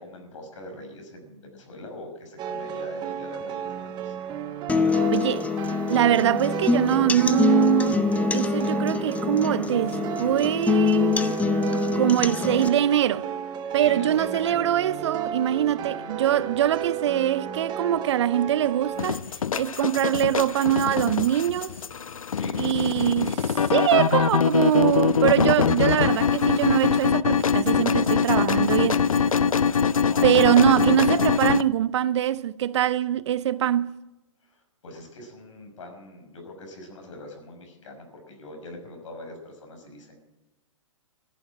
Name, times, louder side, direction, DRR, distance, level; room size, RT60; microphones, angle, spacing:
voice 1, 0.0-4.1 4.8-5.4 13.8-14.6 22.3-22.5 27.9-30.8 34.4-40.2, left 2 dB, 65° left, 5.9 m, -43 dB
sound 1, 2.4-19.1, right 9 dB, 25° right, 1.2 m, -33 dB
sound 2, 4.7-12.7, left 5 dB, 10° left, 0.6 m, -25 dB
voice 2, 5.1-5.4 5.9-11.2 11.9-13.3 13.7-19.2 19.6-21.7 22.6-29.0 30.2-34.0, right 11 dB, 55° right, 0.6 m, -23 dB
sound 3, 19.0-31.6, left 6 dB, 85° left, 0.6 m, -23 dB
14.5 x 10.5 x 8.8 m
hypercardioid pair, 125°, 17 cm